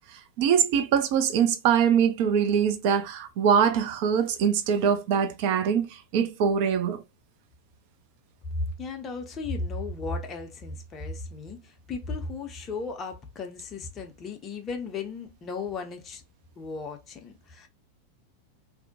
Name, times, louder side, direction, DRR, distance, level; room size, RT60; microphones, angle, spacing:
voice 1, 0.1-7.0, right 7 dB, 45° right, 0.4 m, -23 dB
voice 2, 8.8-16.2 16.6-17.7, left 4 dB, 25° left, 0.5 m, -35 dB
2.5 x 2.1 x 2.6 m
figure-of-eight pair, 90°, 0 cm